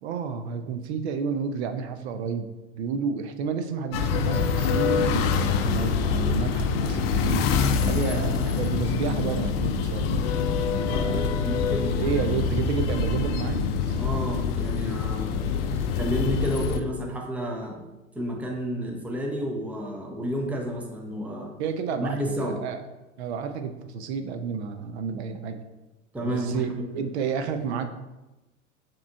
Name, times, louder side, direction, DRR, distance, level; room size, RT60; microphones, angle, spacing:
voice 1, 0.0-7.6 7.8-10.3 10.7-11.3 11.9-14.0 21.6-22.8 23.2-25.6 26.2-27.9, right 6 dB, 55° right, 8 dB, 0.5 m, -31 dB
sound 1, 3.9-16.8, left 5 dB, 50° left, 0.5 m, -25 dB
voice 2, 10.9-12.2 14.0-15.6 16.0-17.8 18.2-21.5 22.0-22.5 26.1-27.1, equal, 5° right, 0 dB, 0.6 m, -31 dB
7.0 x 3.0 x 2.3 m, 1.0 s
figure-of-eight pair, 85°, 39 cm